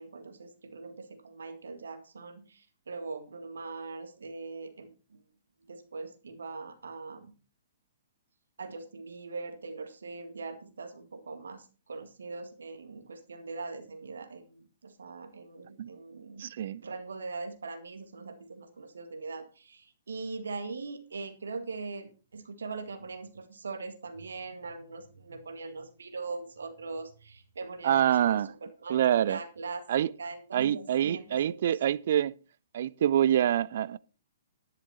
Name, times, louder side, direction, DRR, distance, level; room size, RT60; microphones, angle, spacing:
voice 1, 0.0-5.3 5.7-7.4 8.6-16.5 16.8-28.4 28.8-29.9 30.2-31.8, right 3 dB, 70° right, 1.9 m, -41 dB
voice 2, 16.4-16.8 27.8-28.5 28.9-29.4 29.9-30.1 30.5-32.3 32.7-34.0, right 10 dB, 55° right, 0.5 m, -26 dB
11.0 x 10.5 x 4.1 m
figure-of-eight pair, 120°, 0 cm